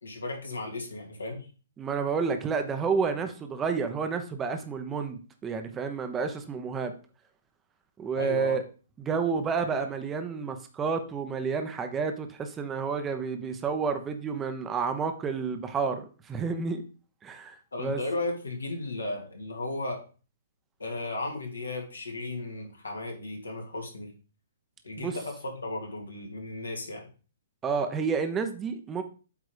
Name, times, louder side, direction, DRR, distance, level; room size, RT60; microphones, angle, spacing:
voice 1, 0.0-1.5 8.2-8.6 17.7-20.0 20.8-24.1 24.8-27.1, left 2 dB, 80° left, 2 dB, 2.5 m, -35 dB
voice 2, 1.8-6.9 8.0-8.6 9.0-16.8 17.2-18.0 25.0-25.2 27.6-29.0, right 5 dB, 15° right, 7 dB, 0.9 m, -30 dB
8.2 x 3.7 x 5.0 m, 0.36 s
figure-of-eight pair, 125°, 0 cm